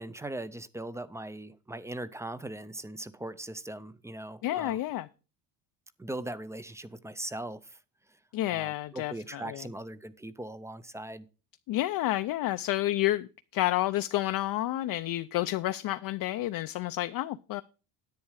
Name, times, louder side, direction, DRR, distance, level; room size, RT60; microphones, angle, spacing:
voice 1, 0.0-4.8 6.0-7.8 8.5-11.2, right 1 dB, 5° right, 0.4 m, -40 dB
voice 2, 4.4-5.1 8.3-9.7 11.7-17.6, left 15 dB, 50° left, 0.5 m, -30 dB
10.5 x 8.5 x 4.8 m
cardioid pair, 140°, 46 cm